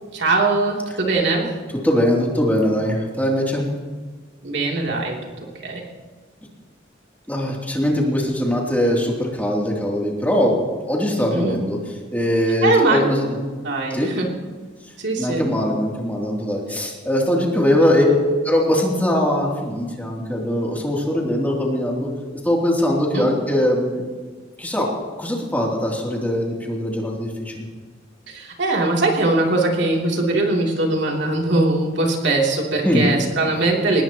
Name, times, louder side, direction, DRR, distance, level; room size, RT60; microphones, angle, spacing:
voice 1, 0.1-1.5 4.4-5.2 5.6-5.8 11.3-11.6 12.6-13.1 13.6-14.3 15.0-15.4 23.1-23.3 28.3-34.0, right 2 dB, 65° right, -1 dB, 3.2 m, -21 dB
voice 2, 1.8-3.6 7.3-10.5 10.9-11.8 12.1-13.4 13.9-14.1 15.2-18.2 18.4-22.1 22.4-24.1 24.6-24.9 25.2-27.7 32.8-33.0, left 1 dB, 10° left, -3 dB, 3.0 m, -21 dB
23.0 x 20.0 x 3.0 m, 1.4 s
head